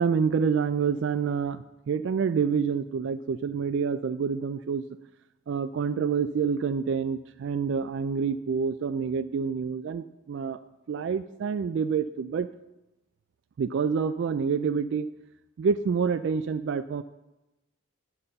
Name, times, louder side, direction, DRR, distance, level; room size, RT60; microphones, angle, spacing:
voice 1, 0.0-4.8 5.5-10.6 10.9-12.5 13.6-15.1 15.6-17.0, right 6 dB, 65° right, 12 dB, 0.3 m, -27 dB
10.0 x 5.5 x 6.7 m, 0.99 s
head